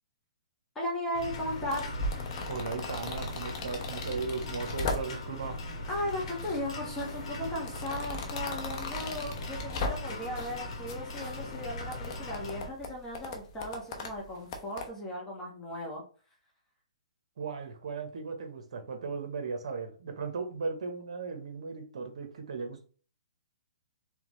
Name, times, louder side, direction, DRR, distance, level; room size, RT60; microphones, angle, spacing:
voice 1, 0.7-1.9 5.9-16.0, left 1 dB, 10° left, 1.3 m, -36 dB
sound 1, 1.1-12.7, left 2 dB, 55° left, 1.5 m, -39 dB
sound 2, 1.4-5.4 5.9-6.6 6.9-10.6 10.9-14.9, left 2 dB, 40° left, 0.9 m, -38 dB
voice 2, 2.5-5.6 17.4-22.8, right 4 dB, 65° right, 1.0 m, -37 dB
3.6 x 3.4 x 3.1 m
hypercardioid pair, 145°, 4 cm